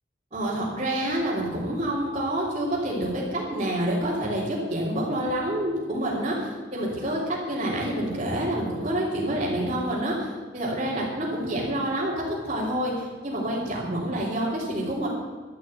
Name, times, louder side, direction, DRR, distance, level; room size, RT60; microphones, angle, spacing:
voice 1, 0.3-10.3 10.5-15.1, right 1 dB, 35° right, -8 dB, 3.8 m, -27 dB
12.5 x 9.8 x 9.3 m, 1.5 s
head